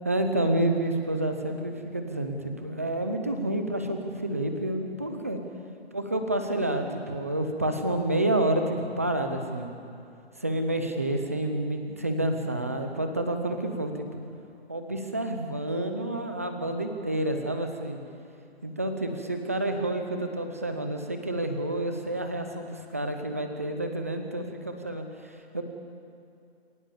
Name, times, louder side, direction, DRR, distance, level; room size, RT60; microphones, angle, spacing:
voice 1, 0.0-5.4 5.9-9.7 10.4-14.1 14.7-18.0 18.6-25.6, right 1 dB, 15° right, 6 dB, 0.8 m, -29 dB
28.0 x 16.5 x 7.3 m, 2.6 s
hypercardioid pair, 175°, 32 cm